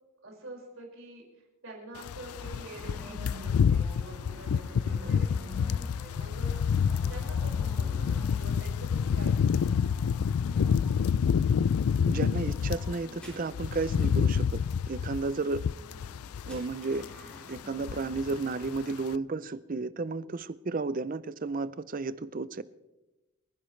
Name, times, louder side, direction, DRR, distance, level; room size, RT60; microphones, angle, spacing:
voice 1, 0.2-9.9, right 2 dB, 65° right, 5.4 m, -47 dB
sound 1, 2.0-13.0 13.3-16.7 17.0-17.3 17.6-18.4 18.6-18.8, left 7 dB, 85° left, 0.4 m, -28 dB
sound 2, 2.4-18.9, left 1 dB, 5° left, 3.7 m, -49 dB
voice 2, 12.1-14.6 14.9-15.6 16.4-17.1 17.5-22.6, right 3 dB, 40° right, 0.5 m, -33 dB
30.0 x 11.0 x 3.2 m
head